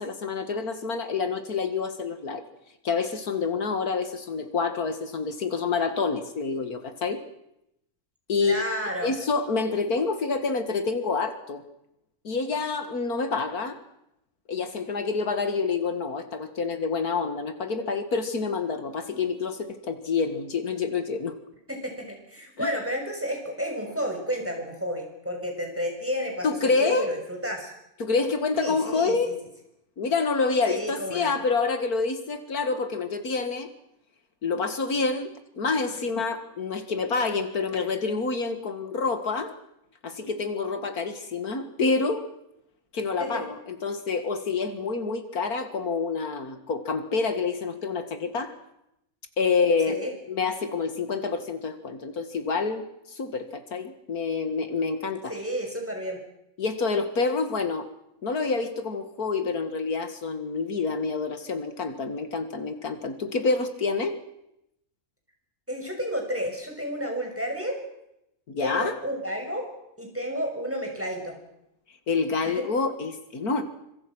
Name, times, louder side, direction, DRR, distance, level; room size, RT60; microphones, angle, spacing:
voice 1, 0.0-2.4 2.8-7.2 8.3-8.6 9.0-11.6 12.2-13.8 14.5-21.3 22.6-22.7 26.4-27.1 28.0-29.4 30.0-33.7 34.4-39.5 40.0-42.2 42.9-48.5 49.4-50.0 50.3-52.8 53.1-55.3 56.6-57.9 58.2-64.2 68.5-68.9 72.1-73.6, left 4 dB, 80° left, 9 dB, 2.4 m, -27 dB
voice 2, 8.4-9.1 21.7-27.7 28.6-29.1 30.7-31.3 43.2-43.5 49.9-50.1 55.3-56.2 65.7-67.8 68.6-69.7 70.0-71.4 72.4-72.6, equal, 10° right, 2 dB, 6.3 m, -31 dB
26.0 x 25.0 x 6.2 m, 0.82 s
omnidirectional pair, 1.6 m